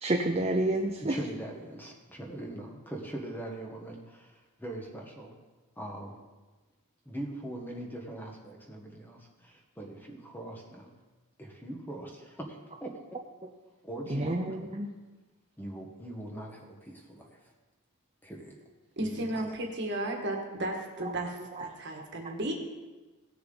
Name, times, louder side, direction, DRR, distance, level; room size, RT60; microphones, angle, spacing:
voice 1, 0.0-1.2 14.1-14.9 21.6-21.7, right 1 dB, 25° right, 2 dB, 0.6 m, -29 dB
voice 2, 1.0-5.3 5.8-6.2 7.0-10.9 11.4-12.9 13.8-14.7 15.6-17.5 18.2-18.6 19.0-19.5, right 1 dB, 10° left, 0 dB, 1.3 m, -41 dB
voice 3, 19.0-22.5, right 1 dB, 50° right, 2 dB, 1.6 m, -34 dB
17.5 x 6.7 x 4.0 m, 1.3 s
head